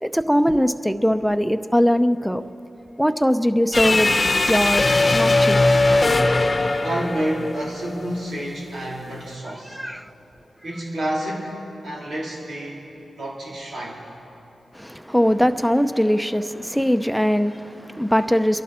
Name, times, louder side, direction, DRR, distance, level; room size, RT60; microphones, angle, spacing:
voice 1, 0.0-2.4 3.0-4.1 4.4-4.9 5.1-5.6 9.7-10.1 14.7-18.6, equal, ahead, 0.8 m, -21 dB
sound 1, 3.7-8.1, left 2 dB, 40° left, 0.9 m, -19 dB
voice 2, 6.4-9.8 10.6-11.5 11.8-12.8 13.2-14.0, right 1 dB, 80° right, 4.0 m, -30 dB
27.5 x 11.5 x 4.4 m
cardioid pair, 55°, 0 cm